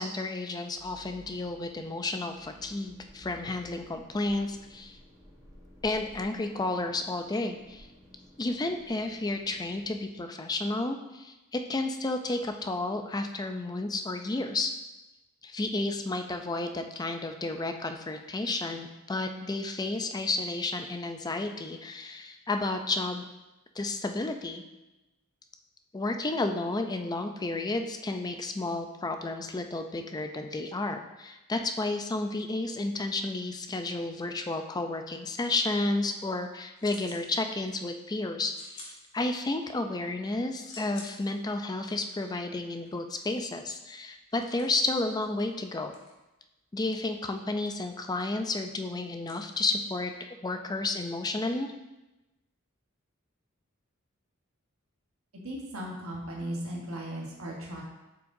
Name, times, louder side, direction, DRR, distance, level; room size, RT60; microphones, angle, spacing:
voice 1, 0.0-5.0 5.8-7.9 8.4-14.7 15.4-23.2 23.8-24.6 25.9-45.9 46.7-50.1 50.4-51.7, left 2 dB, 20° left, 6 dB, 0.4 m, -32 dB
sound 1, 0.8-9.9, equal, 15° right, 1.3 m, -54 dB
sound 2, 36.7-37.3 37.6-38.0 38.5-39.7 40.0-50.1, left 3 dB, 80° left, 1.5 m, -52 dB
voice 2, 55.4-57.8, right 1 dB, 75° right, -2 dB, 1.2 m, -37 dB
7.4 x 5.7 x 2.6 m, 1.0 s
head